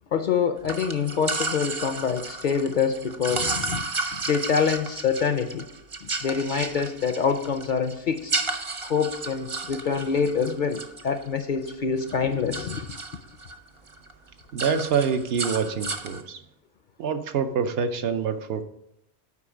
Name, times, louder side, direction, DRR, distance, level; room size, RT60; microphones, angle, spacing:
voice 1, 0.1-3.9 4.1-5.7 6.0-8.3 8.9-12.9, left 6 dB, 55° left, 9 dB, 0.6 m, -26 dB
sound 1, 0.7-11.7 12.0-13.6 13.9-14.1 14.4-16.2, right 3 dB, 40° right, 0.5 m, -33 dB
voice 2, 14.5-16.4 17.0-18.6, right 6 dB, 70° right, 9 dB, 0.8 m, -26 dB
8.4 x 4.9 x 4.9 m, 0.81 s
omnidirectional pair, 1.1 m